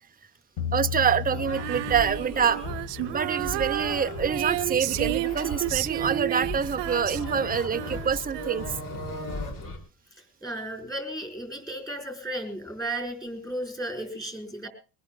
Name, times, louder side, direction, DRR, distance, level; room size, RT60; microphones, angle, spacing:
sound 1, 0.6-2.8, left 7 dB, 75° left, 1.6 m, -34 dB
voice 1, 0.7-2.6 3.1-8.8, right 7 dB, 20° right, 11 dB, 0.6 m, -26 dB
sound 2, 1.3-9.8, left 2 dB, 50° left, 4.1 m, -36 dB
Female singing, 1.5-8.9, right 19 dB, 75° right, 0.7 m, -32 dB
voice 2, 10.1-14.7, right 1 dB, 10° left, 6 dB, 4.4 m, -34 dB
22.5 x 20.0 x 2.2 m, 0.34 s
cardioid pair, 125°, 42 cm